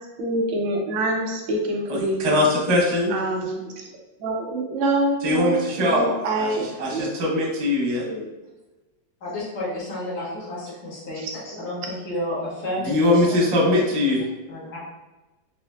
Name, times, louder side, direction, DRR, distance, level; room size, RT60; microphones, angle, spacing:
voice 1, 0.2-2.4 3.1-3.8 4.2-7.1 8.0-8.3 10.3-10.4 11.2-11.7, right 2 dB, 90° right, 1 dB, 1.4 m, -26 dB
voice 2, 1.9-3.1 5.2-6.1 6.4-8.0 12.9-14.2, left 1 dB, 55° right, -3 dB, 0.8 m, -21 dB
voice 3, 9.2-11.2 11.6-13.4 13.6-14.1 14.5-14.8, left 1 dB, 45° left, -8 dB, 1.3 m, -31 dB
4.1 x 2.8 x 2.2 m, 1.1 s
omnidirectional pair, 2.1 m